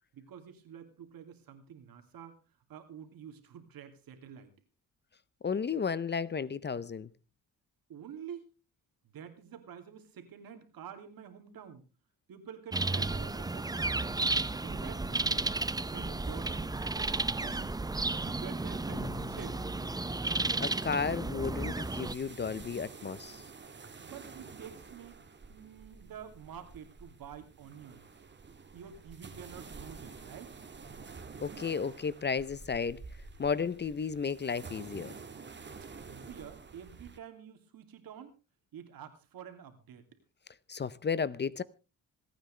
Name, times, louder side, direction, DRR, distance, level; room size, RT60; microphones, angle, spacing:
voice 1, 0.1-2.4 2.7-4.5 7.9-8.5 9.0-11.8 12.3-14.4 14.6-15.5 15.9-19.6 24.0-25.2 25.5-28.0 28.7-30.6 36.1-38.3 38.7-40.1, right 8 dB, 75° right, 2.7 m, -48 dB
voice 2, 5.4-7.1 20.6-23.4 31.4-33.0 33.4-35.1 40.7-41.6, left 6 dB, 30° left, 0.6 m, -33 dB
sound 1, 12.7-22.1, right 3 dB, 10° right, 0.6 m, -33 dB
sound 2, 18.9-21.5, left 9 dB, 85° left, 1.7 m, -50 dB
sound 3, 20.6-37.2, right 4 dB, 30° right, 1.7 m, -49 dB
26.5 x 9.3 x 3.3 m
cardioid pair, 90°, 36 cm